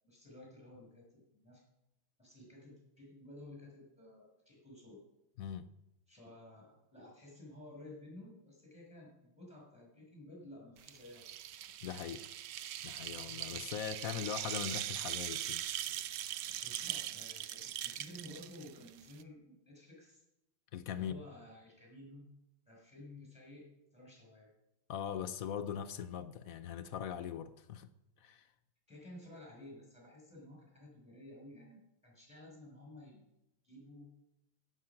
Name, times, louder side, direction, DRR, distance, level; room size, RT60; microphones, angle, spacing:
voice 1, 0.0-1.6 2.2-5.0 6.1-11.4 16.6-20.2 21.0-22.3 22.7-24.5 28.9-33.3 33.6-34.1, left 1 dB, 5° right, 6.0 m, -54 dB
voice 2, 5.4-5.7 11.8-12.3 12.8-15.6 20.7-21.2 24.9-27.9 28.2-28.5, left 9 dB, 65° left, 0.8 m, -41 dB
sound 1, 10.8-19.2, right 12 dB, 70° right, 1.2 m, -41 dB
16.0 x 8.0 x 5.9 m
omnidirectional pair, 2.1 m